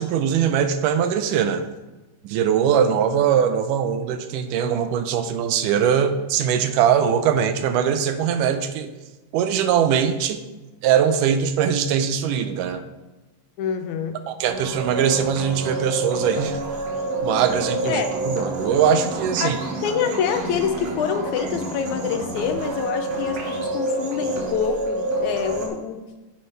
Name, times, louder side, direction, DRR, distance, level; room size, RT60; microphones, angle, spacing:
voice 1, 0.0-1.6 2.2-8.9 9.3-10.4 10.8-12.8 14.3-16.6 17.2-19.6, right 8 dB, 85° right, 9 dB, 2.2 m, -21 dB
voice 2, 13.6-14.2 17.9-18.1 19.4-19.5 19.8-26.0, left 7 dB, 75° left, 6 dB, 1.9 m, -26 dB
sound 1, 14.5-25.7, right 2 dB, 60° right, 2.4 m, -28 dB
10.5 x 7.3 x 3.3 m, 1.1 s
omnidirectional pair, 3.6 m